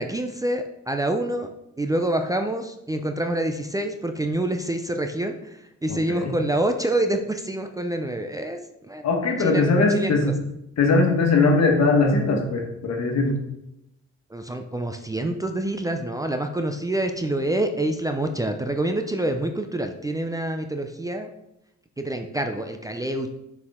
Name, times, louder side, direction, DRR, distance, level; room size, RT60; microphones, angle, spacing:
voice 1, 0.0-1.5 1.8-5.4 5.8-8.6 8.9-9.1 9.4-10.1 14.3-21.3 22.0-23.3, right 1 dB, 10° right, 5 dB, 0.5 m, -26 dB
voice 2, 5.9-6.3 9.0-10.3 10.8-13.3, left 3 dB, 60° left, 2 dB, 1.5 m, -20 dB
6.5 x 4.7 x 3.6 m, 0.86 s
cardioid pair, 90°, 30 cm